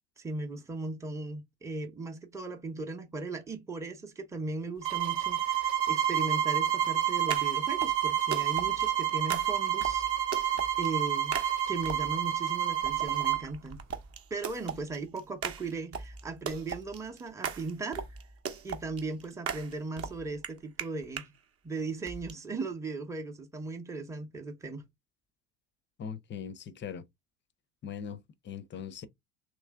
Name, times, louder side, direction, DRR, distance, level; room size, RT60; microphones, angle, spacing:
voice 1, 0.2-10.1 10.4-11.4 11.7-13.8 14.3-18.0 18.6-21.3 21.6-24.8, right 3 dB, 5° right, 0.8 m, -37 dB
sound 1, 4.8-13.5, right 10 dB, 60° right, 1.2 m, -29 dB
sound 2, 6.8-12.3 12.8-21.3 22.1-22.3, right 6 dB, 35° right, 0.8 m, -39 dB
voice 2, 26.0-27.0 27.8-28.2 28.4-29.1, left 7 dB, 25° left, 0.6 m, -40 dB
3.2 x 2.9 x 3.5 m
hypercardioid pair, 70°, 43 cm